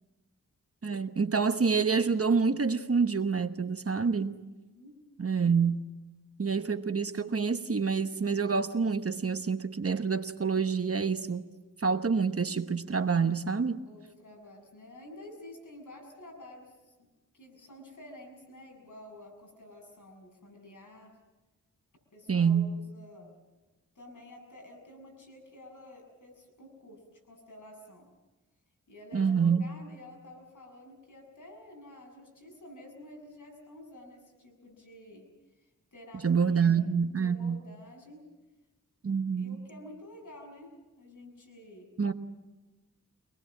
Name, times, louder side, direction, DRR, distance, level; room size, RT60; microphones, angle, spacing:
voice 1, 0.8-4.3 5.2-5.9 6.4-11.4 11.8-13.8 22.3-22.7 29.1-29.7 36.2-37.6 39.0-39.6 42.0-42.1, right 5 dB, 45° right, 1.1 m, -27 dB
voice 2, 13.8-17.1 17.3-21.1 22.1-23.3 24.0-28.1 28.9-35.3 35.6-36.8 37.1-38.2 39.4-41.9, left 1 dB, 70° left, 6.9 m, -50 dB
24.5 x 20.0 x 7.4 m
wide cardioid pair, 55°, 32 cm